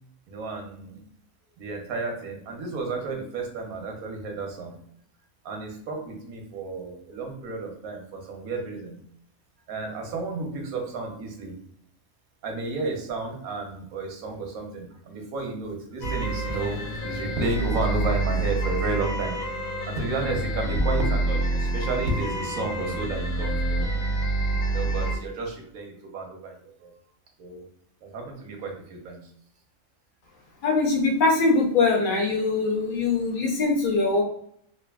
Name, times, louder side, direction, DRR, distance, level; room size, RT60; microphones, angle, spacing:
voice 1, 0.3-1.0 1.6-4.8 5.4-9.0 9.7-11.5 12.4-19.4 19.9-23.8 24.7-26.9 27.4-27.6 28.0-29.2, right 3 dB, 90° right, 2 dB, 1.2 m, -32 dB
sound 1, 16.0-25.2, right 2 dB, 90° left, 1.1 m, -27 dB
voice 2, 30.6-34.2, left 3 dB, 50° left, 0 dB, 0.7 m, -22 dB
3.2 x 2.4 x 2.2 m, 0.67 s
omnidirectional pair, 1.4 m